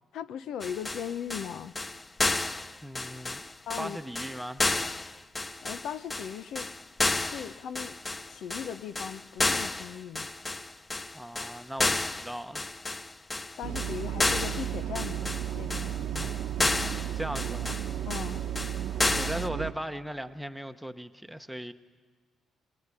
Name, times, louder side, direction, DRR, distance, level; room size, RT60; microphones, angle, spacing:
voice 1, 0.1-1.7 3.7-4.0 5.6-6.7 7.2-8.0 8.3-10.3 13.6-16.0 18.1-18.4, left 8 dB, 75° left, 14 dB, 0.7 m, -38 dB
sound 1, 0.6-19.5, left 2 dB, 20° left, 0.6 m, -31 dB
voice 2, 2.8-3.5 3.8-4.6 11.1-12.6 16.1-16.3 16.6-17.9 19.1-21.7, equal, ahead, 8 dB, 0.9 m, -38 dB
sound 2, 13.6-19.7, right 11 dB, 75° right, 1.0 m, -34 dB
23.0 x 18.5 x 9.9 m, 1.5 s
cardioid pair, 90°, 0 cm